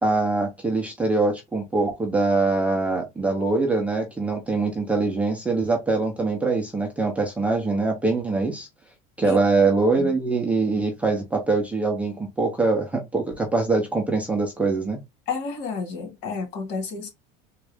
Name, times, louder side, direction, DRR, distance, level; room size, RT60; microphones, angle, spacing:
voice 1, 0.0-8.7 9.2-15.0, right 3 dB, 5° right, 0.5 m, -23 dB
voice 2, 15.3-17.1, left 5 dB, 55° left, 1.8 m, -31 dB
3.6 x 2.4 x 3.3 m
cardioid pair, 165°, 21 cm